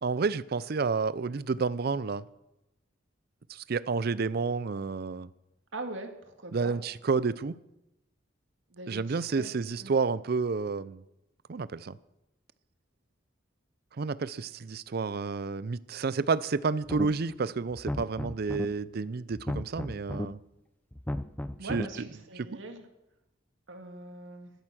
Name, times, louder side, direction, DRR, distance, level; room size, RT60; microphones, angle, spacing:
voice 1, 0.0-2.2 3.5-5.3 6.5-7.6 8.9-11.0 11.5-12.0 14.0-20.4 21.7-22.1 22.4-22.5, right 4 dB, 55° right, 0.5 m, -30 dB
voice 2, 5.7-6.1 6.4-6.7 8.7-9.5 9.8-9.9 21.6-22.8 23.7-24.5, right 2 dB, 80° right, 2.0 m, -41 dB
sound 1, 16.8-17.3 17.7-18.7 19.3-20.3 20.9-21.9, left 1 dB, 10° left, 0.5 m, -34 dB
13.5 x 12.0 x 6.3 m
head